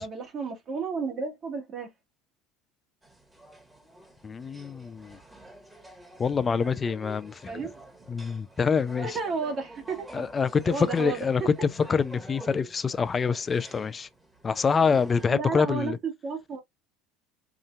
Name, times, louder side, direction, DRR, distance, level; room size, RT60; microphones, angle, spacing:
voice 1, 0.0-1.9 7.5-7.7 9.0-10.3 10.7-11.5 15.3-16.6, right 5 dB, 40° right, 1.6 m, -32 dB
sound 1, 3.0-15.3, right 1 dB, 10° right, 1.6 m, -47 dB
voice 2, 4.2-5.2 6.2-7.7 8.1-9.2 10.1-14.1 14.4-16.0, left 5 dB, 30° left, 0.5 m, -26 dB
4.9 x 2.7 x 2.4 m
hypercardioid pair, 80°, 0 cm